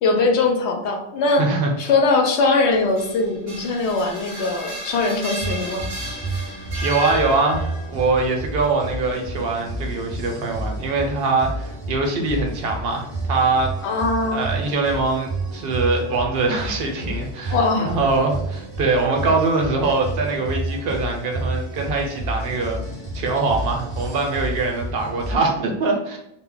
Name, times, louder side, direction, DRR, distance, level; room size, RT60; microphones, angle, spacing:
voice 1, 0.0-1.4 1.8-5.8 13.8-14.5 17.5-18.0, left 3 dB, 80° left, 2 dB, 0.9 m, -21 dB
voice 2, 1.3-1.7 6.5-13.7 14.3-22.8 23.1-26.2, right 3 dB, 65° right, 2 dB, 0.7 m, -23 dB
sound 1, 2.7-7.9, equal, 40° right, 0.5 m, -33 dB
sound 2, 5.4-25.4, right 1 dB, 15° left, 0.8 m, -30 dB
2.2 x 2.0 x 3.7 m, 0.83 s
omnidirectional pair, 1.1 m